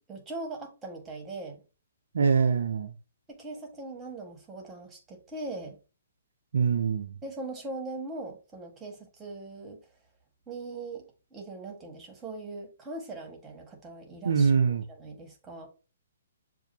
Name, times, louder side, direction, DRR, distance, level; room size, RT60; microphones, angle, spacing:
voice 1, 0.1-1.6 3.3-5.8 7.2-9.8 10.5-11.0 11.3-14.5 15.0-15.7, right 2 dB, 15° right, 1.4 m, -40 dB
voice 2, 2.1-2.9 6.5-7.1 14.2-14.8, right 6 dB, 70° right, 0.5 m, -24 dB
6.8 x 2.5 x 2.7 m
hypercardioid pair, 130°, 0 cm